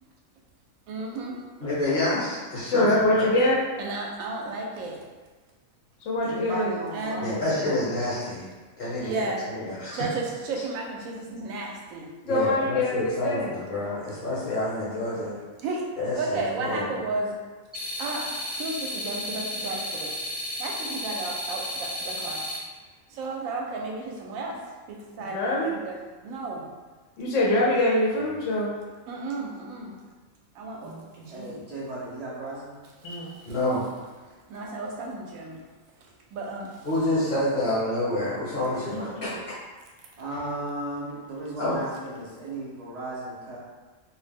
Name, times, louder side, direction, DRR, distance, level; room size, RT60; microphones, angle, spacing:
voice 1, 0.9-1.4 3.8-5.0 6.9-7.3 9.0-9.4 9.9-12.1 15.6-15.8 16.2-17.4 18.0-18.3 18.6-20.1 20.6-22.5 23.1-24.6 24.9-26.0 26.2-26.6 29.1-29.9 30.6-31.6 34.5-35.6 36.3-36.9, right 3 dB, 80° right, -1 dB, 1.0 m, -33 dB
voice 2, 1.6-2.9 3.2-3.3 7.2-8.4 8.8-9.1 9.5-10.1 12.3-15.4 16.0-17.0 33.4-33.8 36.8-39.3 41.6-41.8, left 1 dB, 50° left, -10 dB, 1.0 m, -28 dB
voice 3, 2.7-3.7 6.1-6.7 12.3-13.5 25.3-25.7 27.2-28.7 30.8-31.0 33.0-33.3, left 1 dB, 70° left, -4 dB, 0.9 m, -24 dB
voice 4, 6.2-7.7 12.2-12.7 28.2-28.9 31.3-32.8 34.6-34.8 38.7-39.5 40.2-43.6, right 1 dB, 65° right, -6 dB, 0.4 m, -36 dB
sound 1, 17.7-22.6, left 1 dB, 10° left, 0.6 m, -33 dB
2.5 x 2.0 x 3.3 m, 1.3 s
omnidirectional pair, 1.4 m